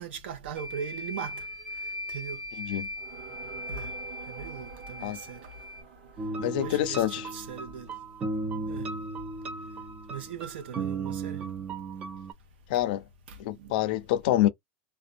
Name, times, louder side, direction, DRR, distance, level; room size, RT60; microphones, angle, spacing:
voice 1, 0.0-1.5 2.1-2.4 3.7-3.9 4.3-5.5 6.4-7.9 8.5-8.9 10.1-11.5 13.3-13.8, right 7 dB, 75° right, 0.7 m, -39 dB
sound 1, 0.6-5.8, left 1 dB, 35° right, 1.3 m, -39 dB
sound 2, 1.2-2.4 2.9-7.7, right 7 dB, 55° right, 1.1 m, -49 dB
voice 2, 2.6-2.9 5.0-5.2 6.4-7.3 12.7-13.0 13.4-14.5, left 13 dB, 55° left, 0.4 m, -26 dB
sound 3, 6.2-12.3, right 3 dB, 20° right, 0.3 m, -35 dB
2.4 x 2.1 x 2.5 m
supercardioid pair, 175°, 6 cm